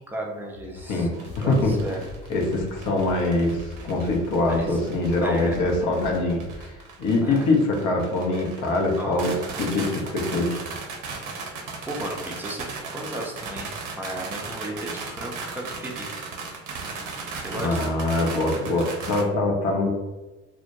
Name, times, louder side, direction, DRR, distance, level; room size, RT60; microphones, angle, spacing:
voice 1, 0.0-2.0 4.5-4.8 5.2-5.6 7.2-7.5 9.0-9.2 11.9-16.2 17.4-17.9, right 1 dB, 5° right, -1 dB, 0.4 m, -35 dB
sound 1, 0.5-6.6, left 1 dB, 80° left, 1.0 m, -42 dB
voice 2, 0.9-1.7 2.3-10.6 17.5-19.9, left 2 dB, 45° left, 1 dB, 0.6 m, -24 dB
sound 2, 1.1-19.2, right 4 dB, 50° right, 0.6 m, -37 dB
2.2 x 2.1 x 2.8 m, 1.2 s
figure-of-eight pair, 55°, 41 cm